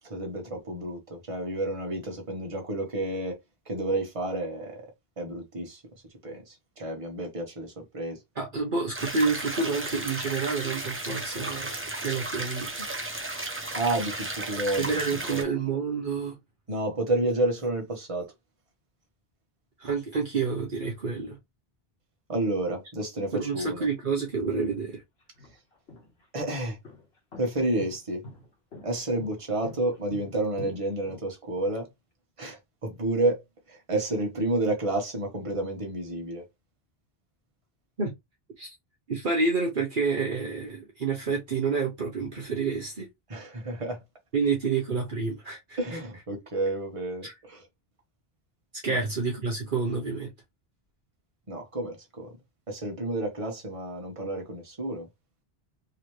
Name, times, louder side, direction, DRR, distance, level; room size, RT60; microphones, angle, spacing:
voice 1, 0.1-3.4 3.7-4.8 5.2-5.8 6.2-8.2 13.7-15.5 16.7-18.3 22.3-23.9 26.3-26.8 27.4-28.2 28.8-31.9 32.4-33.4 33.7-36.4 43.3-44.0 45.8-47.6 48.9-49.0 51.5-52.3 52.7-55.1, right 2 dB, 35° right, 1.2 m, -30 dB
voice 2, 8.4-12.9 14.8-16.4 19.8-21.4 23.3-25.0 38.0-38.1 38.6-38.7 39.1-43.1 44.3-46.0 47.2-47.3 48.8-50.3, right 4 dB, 55° right, 1.1 m, -29 dB
sound 1, 8.9-15.4, right 2 dB, 15° right, 0.7 m, -34 dB
sound 2, 24.4-24.5 25.2-31.7, left 2 dB, 80° left, 1.6 m, -45 dB
4.0 x 2.9 x 3.2 m
omnidirectional pair, 1.0 m